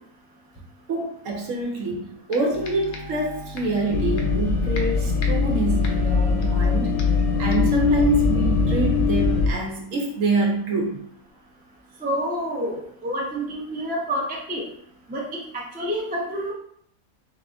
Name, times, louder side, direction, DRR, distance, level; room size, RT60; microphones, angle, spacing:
voice 1, 0.9-6.9 7.4-11.0, right 3 dB, 65° right, 1 dB, 1.0 m, -26 dB
sound 1, 1.8-1.9 2.3-3.3 3.6-3.8 4.2-4.5 4.7-6.7 7.0-7.3 7.5-7.8, left 2 dB, 60° left, 0.8 m, -40 dB
sound 2, 2.5-9.5, left 2 dB, 20° left, 0.8 m, -39 dB
sound 3, 3.9-9.5, left 4 dB, 75° left, 1.1 m, -21 dB
voice 2, 12.0-14.6 15.1-16.5, equal, 10° right, -3 dB, 0.4 m, -28 dB
4.1 x 2.5 x 3.4 m, 0.68 s
omnidirectional pair, 1.6 m